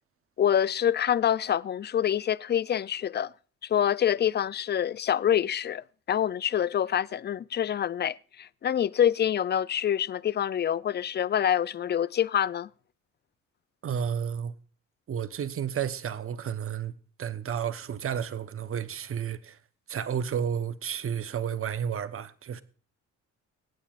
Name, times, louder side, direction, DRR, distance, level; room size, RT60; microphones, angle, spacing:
voice 1, 0.4-3.3 3.6-12.7, left 9 dB, 35° left, 0.5 m, -26 dB
voice 2, 13.8-14.5 15.1-16.9 17.2-19.6 19.9-22.6, right 8 dB, 45° right, 1.0 m, -31 dB
23.5 x 8.9 x 2.5 m
cardioid pair, 90°, 30 cm